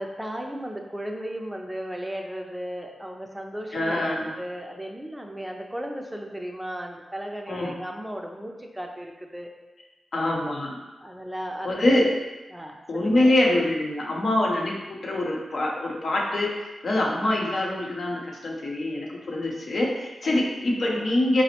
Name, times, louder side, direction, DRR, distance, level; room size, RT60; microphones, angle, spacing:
voice 1, 0.0-9.5 11.0-12.0 12.5-13.2 20.2-20.4, equal, 10° right, 2 dB, 0.4 m, -35 dB
voice 2, 3.7-4.3 7.5-7.7 10.1-10.8 11.6-12.1 12.9-21.4, left 1 dB, 70° left, -2 dB, 0.7 m, -24 dB
4.1 x 2.0 x 2.8 m, 1.1 s
supercardioid pair, 40°, 0 cm